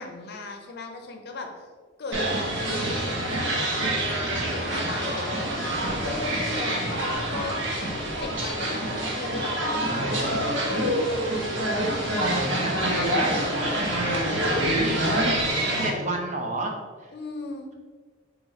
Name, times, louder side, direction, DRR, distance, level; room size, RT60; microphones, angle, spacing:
voice 1, 0.0-1.7 2.0-4.1 4.5-5.5 5.8-8.8 9.1-11.0 14.9-15.4 17.1-17.7, left 2 dB, 55° left, 3 dB, 0.6 m, -38 dB
sound 1, 2.1-15.9, right 1 dB, 70° right, 1.0 m, -26 dB
voice 2, 9.9-10.4 12.2-13.8 14.5-15.1 15.8-16.7 17.0-17.1, right 2 dB, 35° right, 2 dB, 0.6 m, -31 dB
4.0 x 2.9 x 4.0 m, 1.5 s
head